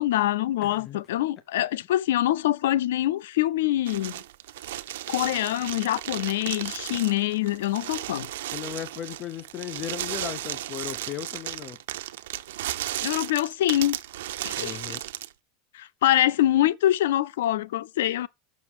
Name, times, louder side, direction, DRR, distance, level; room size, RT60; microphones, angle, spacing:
voice 1, 0.0-4.2 5.1-8.3 13.0-14.0 14.4-15.0 15.7-18.3, left 13 dB, 90° left, 0.4 m, -25 dB
voice 2, 0.6-1.0 8.5-11.8 14.6-15.0, left 10 dB, 30° left, 0.6 m, -36 dB
sound 1, 3.9-15.3, right 14 dB, 85° right, 0.6 m, -35 dB
6.2 x 6.0 x 7.2 m
supercardioid pair, 175°, 0 cm